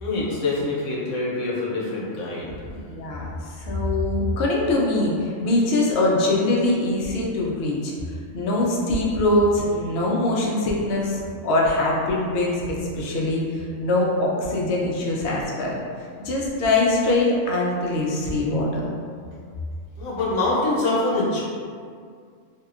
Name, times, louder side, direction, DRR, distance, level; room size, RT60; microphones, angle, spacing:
voice 1, 0.0-2.5 20.0-21.4, left 2 dB, 85° left, -5 dB, 1.1 m, -25 dB
voice 2, 2.7-15.8 16.2-18.9, left 2 dB, 65° left, -4 dB, 0.6 m, -23 dB
2.7 x 2.1 x 2.4 m, 2.1 s
omnidirectional pair, 1.4 m